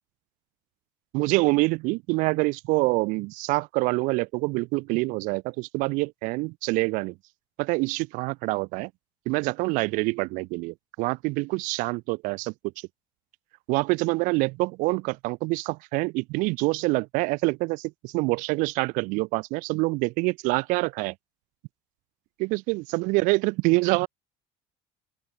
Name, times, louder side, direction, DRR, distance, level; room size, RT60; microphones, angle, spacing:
voice 1, 1.1-7.1 7.6-8.9 9.2-12.9 13.7-21.1 22.4-24.1, right 25 dB, 75° right, 1.3 m, -26 dB
open air
cardioid pair, 150°, 14 cm